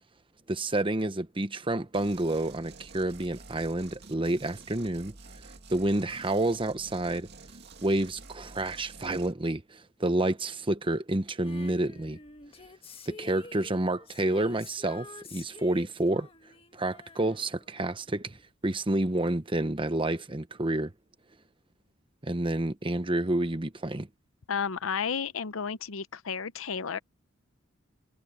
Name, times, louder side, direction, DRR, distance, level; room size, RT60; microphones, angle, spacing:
voice 1, 0.5-5.1 5.7-7.3 7.8-12.2 13.1-16.3 16.7-18.4 18.6-20.9 22.2-24.1, right 1 dB, 25° right, 1.1 m, -29 dB
sound 1, 1.9-9.3, right 3 dB, 55° right, 2.3 m, -49 dB
Female singing, 11.4-18.4 19.5-19.6, left 3 dB, 30° left, 1.6 m, -49 dB
voice 2, 24.5-27.0, left 6 dB, 80° left, 0.7 m, -32 dB
head